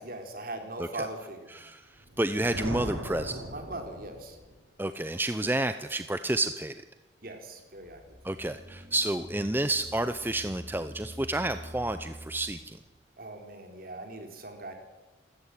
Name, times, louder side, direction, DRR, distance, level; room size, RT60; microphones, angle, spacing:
voice 1, 0.0-1.6 3.5-4.4 7.2-8.0 13.2-14.7, right 2 dB, 50° right, 5 dB, 4.0 m, -40 dB
voice 2, 1.5-3.4 4.8-6.8 8.2-12.8, right 2 dB, 10° right, 10 dB, 0.7 m, -30 dB
Thunder, 1.9-4.6, right 1 dB, 90° right, 6.3 m, -38 dB
sound 1, 7.7-12.8, equal, 25° right, 2.4 m, -46 dB
27.5 x 14.0 x 9.9 m, 1.2 s
head